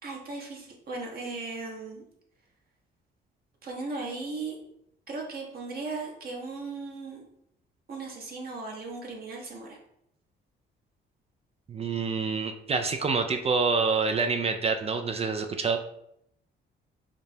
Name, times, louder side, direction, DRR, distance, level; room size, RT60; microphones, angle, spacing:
voice 1, 0.0-2.0 3.6-4.5 5.1-7.2 7.9-9.8, right 3 dB, 50° right, -1 dB, 1.1 m, -37 dB
voice 2, 11.7-15.8, right 4 dB, 30° right, 6 dB, 0.4 m, -27 dB
5.0 x 2.1 x 2.8 m, 0.75 s
cardioid pair, 90°, 20 cm